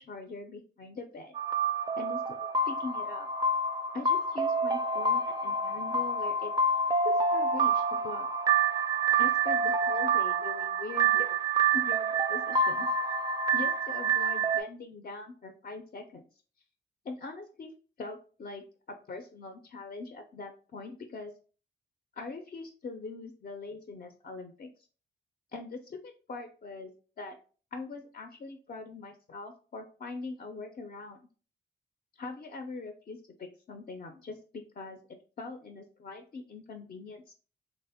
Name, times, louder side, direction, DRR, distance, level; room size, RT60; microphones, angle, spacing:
voice 1, 0.0-1.3 2.0-2.4 2.7-3.3 3.9-6.5 7.0-8.3 9.2-11.4 11.7-12.9 13.5-16.2 17.0-17.7 18.0-21.3 22.2-24.7 25.5-26.9 27.2-27.4 27.7-31.2 32.2-37.3, left 3 dB, 45° left, 5 dB, 0.4 m, -42 dB
sound 1, 1.3-14.6, right 4 dB, 20° right, 0.4 m, -27 dB
3.4 x 2.0 x 3.3 m, 0.39 s
cardioid pair, 95°, 21 cm